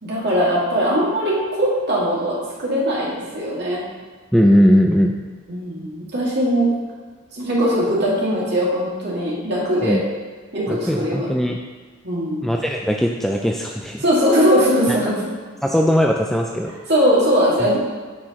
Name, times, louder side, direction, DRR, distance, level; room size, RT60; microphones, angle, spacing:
voice 1, 0.0-3.8 5.5-6.7 7.3-10.0 10.5-11.3 12.0-12.4 14.0-15.1 16.9-17.8, equal, 50° right, -6 dB, 2.2 m, -20 dB
voice 2, 4.3-5.1 9.8-10.0 10.7-11.6 12.4-14.0 15.6-16.7, equal, ahead, 1 dB, 0.3 m, -18 dB
8.4 x 6.4 x 3.0 m, 1.5 s
head